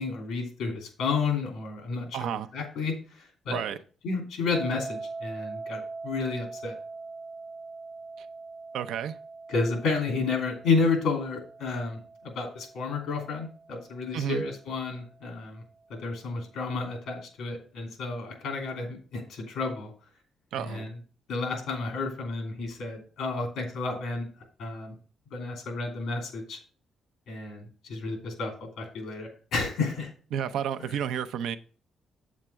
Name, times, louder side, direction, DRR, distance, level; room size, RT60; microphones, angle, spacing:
voice 1, 0.0-3.6 4.0-6.7 9.5-12.0 12.2-15.6 16.0-19.9 20.5-20.9 21.3-24.3 24.6-24.9 25.3-26.6 27.3-30.1, left 4 dB, 85° left, 2.7 m, -31 dB
voice 2, 2.1-2.5 3.5-3.8 8.2-8.3 8.7-9.2 14.1-14.4 20.5-20.9 30.3-31.6, right 9 dB, 80° right, 0.7 m, -31 dB
sound 1, 4.5-15.4, right 3 dB, 35° right, 0.7 m, -42 dB
7.8 x 7.3 x 3.4 m
cardioid pair, 90°, 0 cm